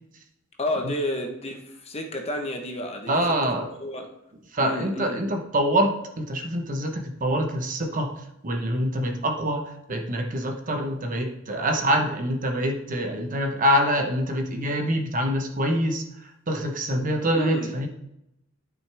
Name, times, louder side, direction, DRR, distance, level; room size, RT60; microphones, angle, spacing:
voice 1, 0.6-3.2 3.8-4.1 4.6-5.2 17.3-17.7, left 1 dB, 30° left, 3 dB, 1.0 m, -30 dB
voice 2, 3.1-3.7 4.5-8.1 8.4-17.9, equal, 40° right, 4 dB, 1.0 m, -25 dB
11.5 x 6.2 x 3.4 m, 0.82 s
head